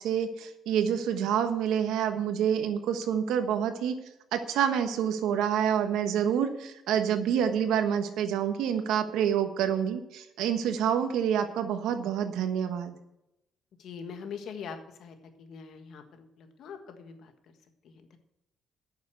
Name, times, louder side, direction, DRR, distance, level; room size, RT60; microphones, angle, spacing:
voice 1, 0.0-4.0 4.3-13.0, right 8 dB, 90° right, 8 dB, 1.2 m, -27 dB
voice 2, 13.8-17.3 17.8-18.2, left 6 dB, 75° left, 6 dB, 1.6 m, -43 dB
9.1 x 6.9 x 8.0 m, 0.86 s
cardioid pair, 90°, 0 cm